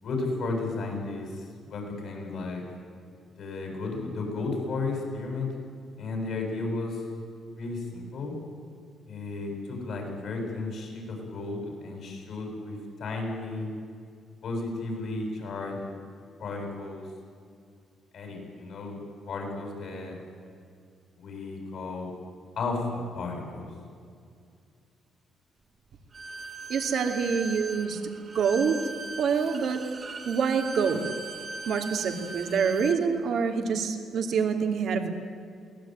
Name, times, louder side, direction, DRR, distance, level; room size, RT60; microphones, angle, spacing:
voice 1, 0.0-2.6 3.4-5.5 6.0-7.0 7.5-8.3 9.1-13.7 14.4-16.0 16.4-17.0 18.1-19.0 19.2-20.2 21.2-22.1 22.6-23.7, left 3 dB, 65° left, 2 dB, 7.8 m, -33 dB
Bowed string instrument, 26.1-33.0, right 3 dB, 40° right, 2.5 m, -39 dB
voice 2, 26.7-28.0 28.3-28.8 29.2-29.8 30.2-31.0 31.7-35.1, right 6 dB, 65° right, 5 dB, 2.7 m, -26 dB
22.5 x 18.0 x 9.4 m, 2.3 s
cardioid pair, 90°, 0 cm